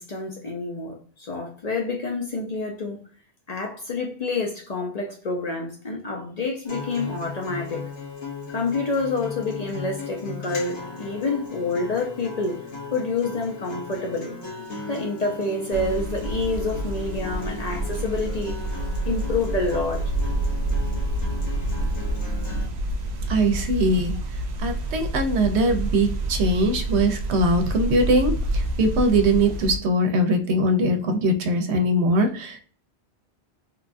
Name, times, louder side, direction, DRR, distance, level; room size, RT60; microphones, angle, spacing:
voice 1, 0.0-3.0 3.5-7.9 8.5-12.6 12.9-14.4 14.9-18.6 19.0-20.1, left 3 dB, 50° left, 0.5 m, -28 dB
Acoustic guitar, 6.7-22.7, left 4 dB, 85° left, 1.2 m, -37 dB
sound 1, 15.7-29.8, right 1 dB, 55° right, 0.5 m, -28 dB
voice 2, 23.3-24.2 24.6-32.6, right 1 dB, 80° right, 0.9 m, -21 dB
3.1 x 2.2 x 2.4 m
omnidirectional pair, 1.1 m